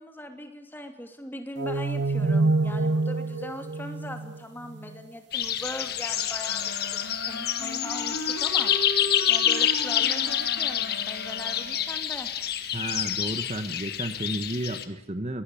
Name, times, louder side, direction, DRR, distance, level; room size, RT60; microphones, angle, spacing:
voice 1, 0.0-6.9 7.3-8.7 9.3-12.3, left 1 dB, 10° left, 5 dB, 2.7 m, -40 dB
sound 1, 1.6-5.0, right 3 dB, 65° right, 0.9 m, -26 dB
sound 2, 5.3-14.8, left 10 dB, 55° left, 1.7 m, -27 dB
Wind instrument woodwind instrument, 6.5-12.0, left 1 dB, 85° left, 3.6 m, -37 dB
voice 2, 12.7-15.4, right 1 dB, 35° right, 9 dB, 1.1 m, -32 dB
23.5 x 19.0 x 8.6 m, 0.80 s
head